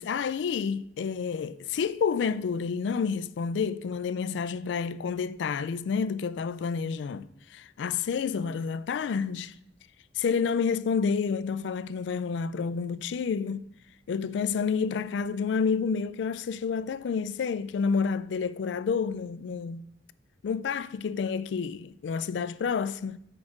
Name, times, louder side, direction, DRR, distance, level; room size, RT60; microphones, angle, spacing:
voice 1, 0.0-9.5 10.2-13.6 14.1-19.8 20.4-23.2, left 6 dB, 70° left, 0.3 m, -29 dB
6.3 x 4.9 x 5.9 m
head